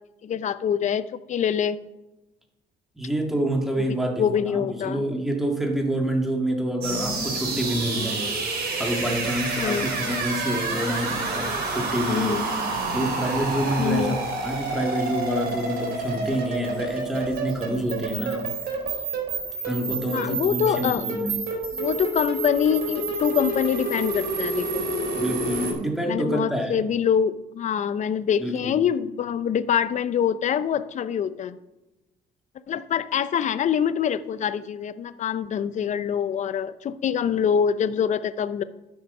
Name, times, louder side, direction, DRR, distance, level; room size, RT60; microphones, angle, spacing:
voice 1, 0.2-1.8 3.8-5.0 9.6-9.9 12.1-12.5 13.8-14.2 20.1-21.1 21.7-24.9 26.1-31.6 32.7-38.6, left 8 dB, 45° left, 14 dB, 0.6 m, -25 dB
voice 2, 3.0-8.3 8.8-12.5 12.9-18.5 19.7-21.4 25.1-26.9 28.4-28.8, right 1 dB, ahead, 1 dB, 2.0 m, -27 dB
sound 1, 6.8-25.7, right 3 dB, 65° right, 3.4 m, -29 dB
12.0 x 6.8 x 5.5 m, 1.0 s
cardioid pair, 110°, 17 cm